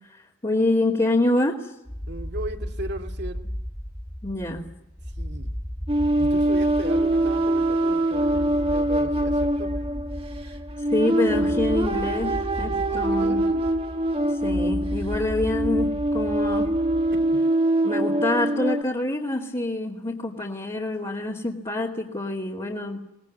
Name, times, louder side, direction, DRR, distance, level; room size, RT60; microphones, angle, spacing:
voice 1, 0.1-1.7 4.2-4.7 10.9-13.4 14.4-16.7 17.8-23.0, left 2 dB, 25° left, -3 dB, 2.5 m, -26 dB
sound 1, 1.9-17.4, equal, 5° left, 1.1 m, -35 dB
voice 2, 2.1-3.5 5.2-5.5 6.2-9.8 12.7-13.7 17.1-17.5, right 1 dB, 60° right, 5 dB, 2.6 m, -37 dB
sound 2, 5.9-18.8, right 1 dB, 30° right, 1.8 m, -24 dB
23.0 x 20.0 x 9.5 m, 0.88 s
head